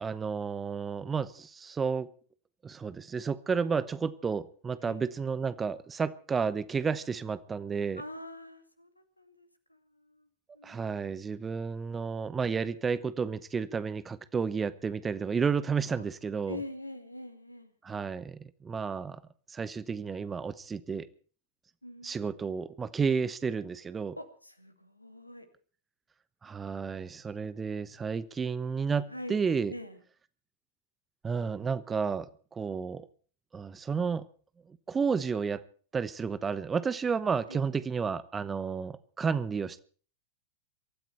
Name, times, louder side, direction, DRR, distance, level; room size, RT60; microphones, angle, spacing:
voice 1, 0.0-2.1 2.6-8.0 10.6-16.6 17.8-19.2 19.5-21.1 22.0-24.2 26.4-29.7 31.2-33.1 33.5-34.3 34.9-35.6 35.9-39.8, right 5 dB, 15° right, 16 dB, 1.0 m, -31 dB
voice 2, 8.0-10.3 10.5-11.0 16.0-16.1 16.5-17.7 21.8-22.6 24.2-25.5 29.1-29.3 29.7-30.0 37.5-37.6, left 1 dB, 85° left, 9 dB, 2.3 m, -44 dB
23.5 x 13.5 x 4.3 m, 0.42 s
figure-of-eight pair, 90°, 0 cm